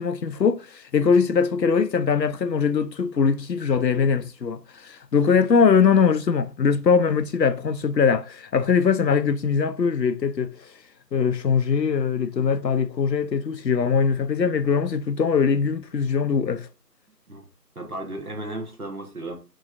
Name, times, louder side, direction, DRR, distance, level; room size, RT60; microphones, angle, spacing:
voice 1, 0.0-10.5 11.1-16.7, left 6 dB, 85° left, 0.7 m, -21 dB
voice 2, 17.7-19.3, right 1 dB, 60° right, 1.3 m, -34 dB
6.2 x 3.2 x 2.4 m
figure-of-eight pair, 170°, 49 cm